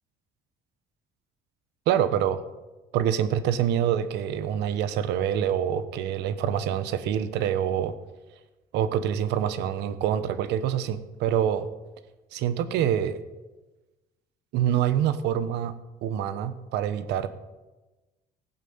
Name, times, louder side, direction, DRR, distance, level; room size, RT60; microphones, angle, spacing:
voice 1, 1.9-2.4 2.9-7.9 8.7-11.7 12.3-13.2 14.5-15.7 16.0-17.3, right 10 dB, 85° right, 13 dB, 1.1 m, -26 dB
15.5 x 9.4 x 8.0 m, 1.1 s
cardioid pair, 110°, 17 cm